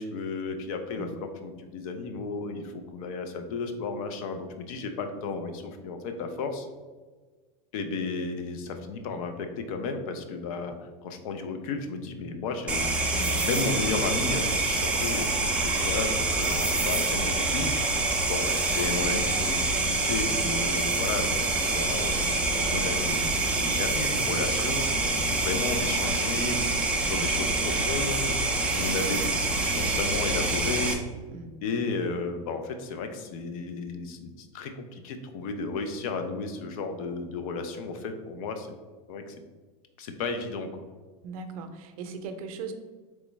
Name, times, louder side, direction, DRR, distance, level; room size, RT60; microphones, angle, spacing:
voice 1, 0.0-6.7 7.7-12.9 13.4-26.6 27.0-28.4 28.7-31.0 31.6-38.8 39.1-39.3 40.0-40.8, left 4 dB, 65° left, 7 dB, 0.5 m, -33 dB
sound 1, 12.7-30.9, right 2 dB, 5° right, 0.3 m, -26 dB
voice 2, 13.1-13.4 20.4-20.7 23.5-23.7 27.0-27.3 31.3-31.5 41.2-42.7, right 4 dB, 70° right, 7 dB, 0.5 m, -39 dB
3.4 x 3.1 x 3.1 m, 1.4 s
supercardioid pair, 145°, 19 cm